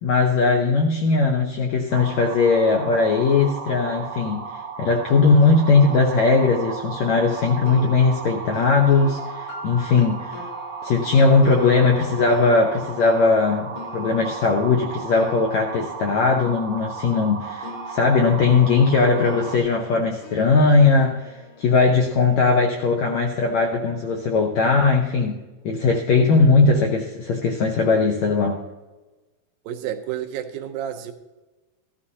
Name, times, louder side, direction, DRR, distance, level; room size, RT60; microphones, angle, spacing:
voice 1, 0.0-10.4 10.8-25.3 25.6-28.6, left 4 dB, 75° left, 2 dB, 1.6 m, -19 dB
sound 1, 1.9-19.6, right 5 dB, 60° right, 1.7 m, -35 dB
sound 2, 5.3-17.3 17.6-22.8, left 4 dB, 60° left, 1.5 m, -44 dB
voice 2, 29.7-31.1, right 10 dB, 80° right, 7 dB, 2.5 m, -30 dB
14.5 x 13.0 x 2.8 m, 1.2 s
omnidirectional pair, 4.3 m